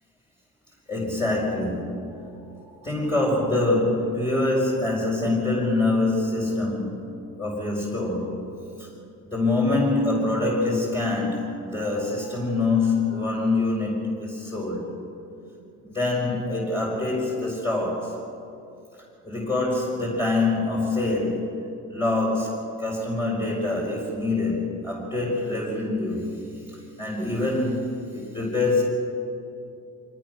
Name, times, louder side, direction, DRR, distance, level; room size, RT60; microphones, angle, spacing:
voice 1, 0.9-8.9 9.3-14.9 15.8-18.2 19.2-21.6 21.9-28.8, left 2 dB, 15° left, -5 dB, 5.2 m, -25 dB
25.0 x 19.0 x 6.3 m, 2.7 s
cardioid pair, 90°, 30 cm